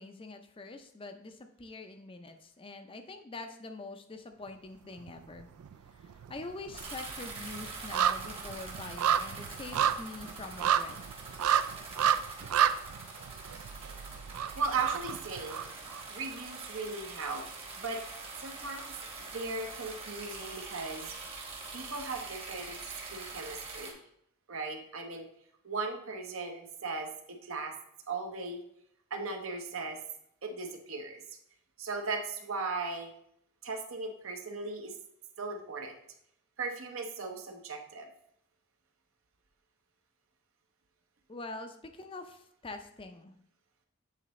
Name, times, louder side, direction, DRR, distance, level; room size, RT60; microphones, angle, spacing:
voice 1, 0.0-5.5 5.9-11.0 41.3-43.4, left 3 dB, 25° left, 7 dB, 0.5 m, -45 dB
sound 1, 5.0-5.8 6.0-16.0 16.4-16.5, right 9 dB, 85° right, 0.3 m, -31 dB
sound 2, 6.7-23.9, right 3 dB, 25° right, 1.0 m, -44 dB
voice 2, 14.6-15.7 16.1-17.5 17.8-18.0 18.4-19.0 19.3-21.5 21.7-22.8 23.1-24.0 24.5-25.3 25.6-27.7 28.1-28.6 29.1-30.0 30.4-31.2 31.8-33.1 33.6-34.9 35.4-36.0 36.6-38.1, right 4 dB, 65° right, 4 dB, 0.8 m, -37 dB
8.3 x 3.9 x 3.1 m, 0.73 s
head